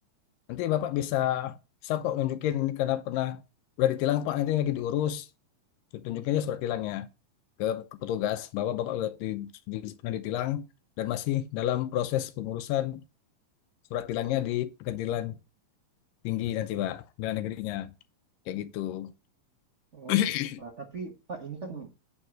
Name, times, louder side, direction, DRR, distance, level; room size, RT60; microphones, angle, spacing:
voice 1, 0.5-1.6 1.8-3.4 3.8-5.3 5.9-7.1 7.6-10.7 11.0-13.0 13.9-15.4 16.2-17.9 18.5-19.1 20.1-20.6, left 12 dB, 85° left, 2.4 m, -29 dB
voice 2, 19.9-20.3 20.6-21.9, right 4 dB, 70° right, 0.6 m, -40 dB
11.0 x 3.7 x 7.4 m
omnidirectional pair, 3.8 m